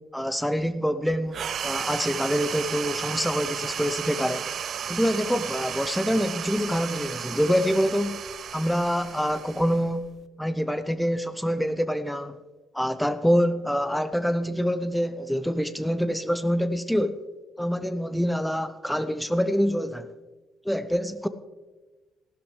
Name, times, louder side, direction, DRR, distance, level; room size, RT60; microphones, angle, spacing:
voice 1, 0.1-4.4 4.9-8.2 8.5-10.1 10.4-12.4 12.7-17.2 17.6-20.1 20.6-21.3, equal, 5° left, 0.8 m, -26 dB
sound 1, 1.3-10.2, right 8 dB, 55° right, 0.4 m, -34 dB
15.0 x 12.0 x 3.3 m
hypercardioid pair, 45°, 0 cm